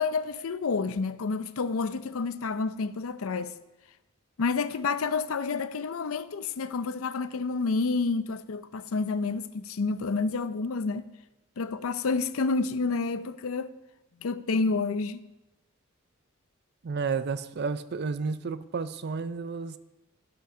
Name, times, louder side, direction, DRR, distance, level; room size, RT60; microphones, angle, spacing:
voice 1, 0.0-3.5 4.4-11.0 11.6-13.7 14.2-15.2, left 4 dB, 85° left, 0.5 m, -29 dB
voice 2, 16.8-19.8, right 5 dB, 50° right, 0.5 m, -31 dB
12.5 x 5.8 x 6.1 m
head